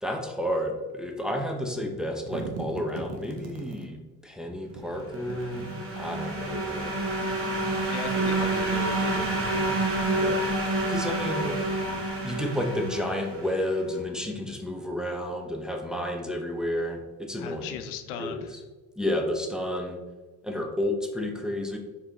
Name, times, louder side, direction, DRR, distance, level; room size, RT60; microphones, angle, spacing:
voice 1, 0.0-5.7 6.0-6.9 10.1-10.4 10.9-11.6 12.2-17.8 18.2-18.6 19.0-20.0 20.4-21.8, left 1 dB, ahead, 2 dB, 0.6 m, -31 dB
sound 1, 1.9-3.9 4.7-6.3 7.2-8.3 8.7-10.2 10.7-12.5, right 4 dB, 75° right, 0.8 m, -43 dB
sound 2, 5.1-13.7, right 2 dB, 30° right, 1.4 m, -28 dB
voice 2, 7.9-9.6 17.4-18.5, left 7 dB, 85° left, 8 dB, 0.5 m, -37 dB
4.6 x 2.8 x 2.9 m, 1.3 s
hypercardioid pair, 65°, 41 cm